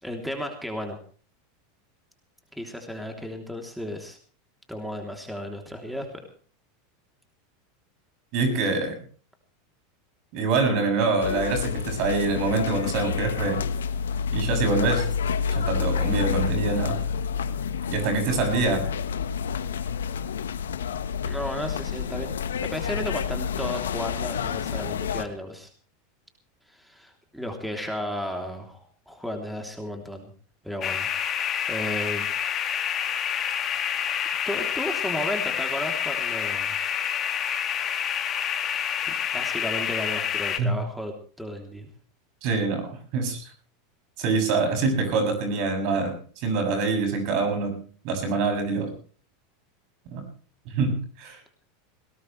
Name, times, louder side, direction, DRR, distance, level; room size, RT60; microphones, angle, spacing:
voice 1, 0.0-1.0 2.5-4.2 4.7-6.2 21.2-25.7 26.7-30.3 30.6-31.1 31.7-32.3 33.8-34.1 34.5-36.7 38.7-38.9 39.3-41.9, left 1 dB, ahead, 3 dB, 3.2 m, -34 dB
voice 2, 8.3-9.0 10.3-13.6 14.3-15.1 15.5-17.0 17.9-18.8 40.6-40.8 42.4-43.4 44.2-47.8 48.0-48.9 50.1-50.3 50.7-51.4, right 3 dB, 55° right, 5 dB, 7.5 m, -25 dB
sound 1, 11.2-25.2, left 6 dB, 90° left, 1.3 m, -29 dB
sound 2, 30.8-40.6, left 8 dB, 35° left, 2.2 m, -28 dB
20.0 x 18.0 x 3.3 m, 0.43 s
hypercardioid pair, 100°, 0 cm